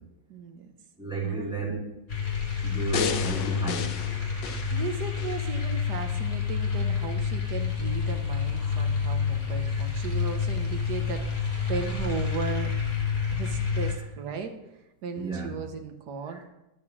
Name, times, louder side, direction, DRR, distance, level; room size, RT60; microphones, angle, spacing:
voice 1, 0.3-0.7 1.2-1.5 4.7-11.2 11.7-12.7 13.3-14.5 15.0-16.5, right 5 dB, 65° right, 6 dB, 1.5 m, -36 dB
voice 2, 1.0-2.0 2.6-4.0 8.8-8.9 9.7-9.8 15.1-15.5 16.3-16.4, right 2 dB, ahead, -8 dB, 3.9 m, -32 dB
sound 1, 2.1-13.9, left 6 dB, 40° left, 2.7 m, -28 dB
sound 2, 2.9-5.4 5.9-6.0, left 8 dB, 75° left, 1.4 m, -33 dB
10.0 x 6.2 x 6.0 m, 0.93 s
omnidirectional pair, 2.0 m